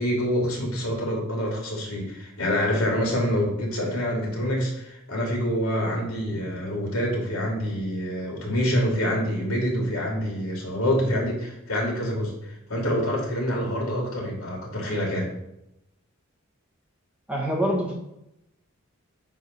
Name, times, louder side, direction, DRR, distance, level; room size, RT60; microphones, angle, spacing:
voice 1, 0.0-12.3 12.7-15.3, equal, 90° left, -2 dB, 3.0 m, -26 dB
voice 2, 17.3-18.0, equal, 5° right, -2 dB, 1.4 m, -25 dB
9.3 x 3.8 x 5.5 m, 0.84 s
head